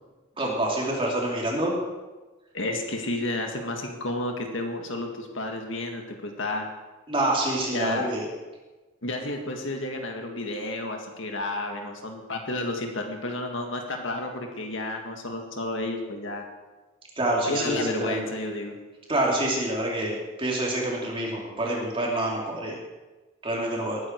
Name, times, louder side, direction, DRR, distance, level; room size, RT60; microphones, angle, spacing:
voice 1, 0.4-1.8 7.1-8.2 17.2-18.2 19.1-22.8 23.4-24.0, right 1 dB, 25° right, -3 dB, 3.1 m, -27 dB
voice 2, 2.5-6.7 7.7-8.1 9.0-16.4 17.5-18.7, left 2 dB, 65° left, 3 dB, 1.9 m, -31 dB
20.5 x 9.4 x 4.7 m, 1.2 s
head